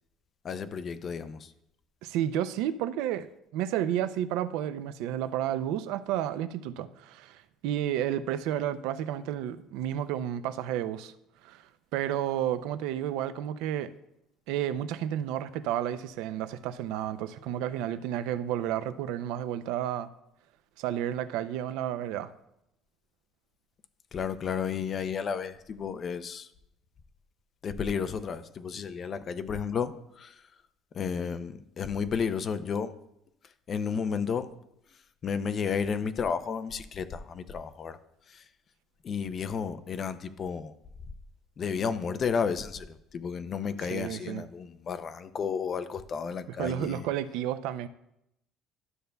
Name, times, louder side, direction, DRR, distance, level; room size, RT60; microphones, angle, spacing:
voice 1, 0.4-1.5 24.1-26.5 27.6-30.4 30.9-32.9 33.7-34.5 35.2-38.0 38.3-38.5 39.0-40.7 41.6-47.1, left 6 dB, 30° left, 0.4 m, -32 dB
voice 2, 2.0-3.3 3.5-11.1 11.4-11.6 11.9-13.9 14.5-20.1 20.8-22.3 43.9-44.4 46.6-47.9, right 11 dB, 80° right, 0.4 m, -31 dB
12.5 x 6.6 x 2.2 m
cardioid pair, 160°, 0 cm